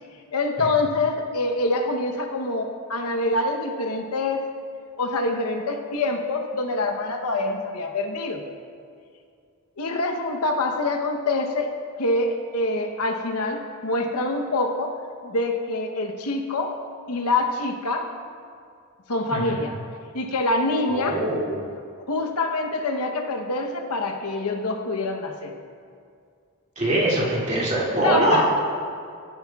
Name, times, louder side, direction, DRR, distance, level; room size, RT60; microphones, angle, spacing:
voice 1, 0.3-4.4 5.0-8.4 9.8-15.0 15.2-16.8 17.1-18.1 19.1-19.8 20.1-21.2 22.1-25.5 28.0-28.6, left 2 dB, 90° left, 4 dB, 0.9 m, -25 dB
voice 2, 20.9-21.6 26.8-28.6, right 1 dB, 35° right, -6 dB, 2.3 m, -22 dB
17.0 x 8.4 x 2.3 m, 2.3 s
head